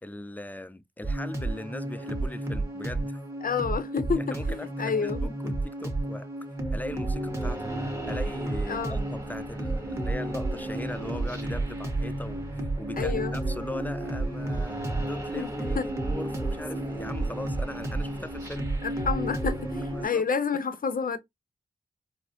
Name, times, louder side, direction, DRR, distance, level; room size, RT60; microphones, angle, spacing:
voice 1, 0.0-3.2 4.2-6.3 6.7-7.7 8.1-18.7 19.9-20.2 20.5-20.6, left 1 dB, 10° left, 0.4 m, -39 dB
sound 1, 1.0-20.1, right 2 dB, 15° right, 1.3 m, -31 dB
voice 2, 3.4-5.5 8.7-9.0 13.0-13.3 15.4-15.5 15.8-15.9 18.8-21.2, left 5 dB, 60° left, 0.6 m, -29 dB
4.2 x 2.0 x 2.8 m
cardioid pair, 50°, 16 cm